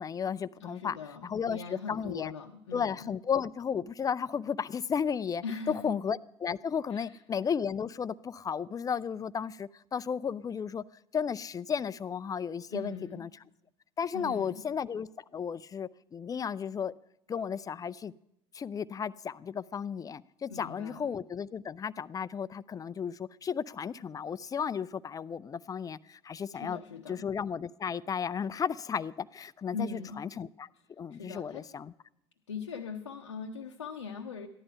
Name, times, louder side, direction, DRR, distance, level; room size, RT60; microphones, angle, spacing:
voice 1, 0.0-1.0 1.2-2.3 2.7-5.4 5.8-10.8 11.1-13.3 14.0-16.9 17.3-18.1 18.5-26.8 27.1-30.7 31.0-31.9, left 7 dB, 25° left, 0.4 m, -34 dB
voice 2, 0.6-3.1 5.4-6.0 6.9-7.1 12.7-13.3 14.1-14.7 20.5-21.1 26.5-27.3 29.7-30.3 31.1-31.7 32.5-34.5, left 5 dB, 90° left, 0.7 m, -40 dB
14.5 x 11.0 x 5.6 m
hypercardioid pair, 65°, 15 cm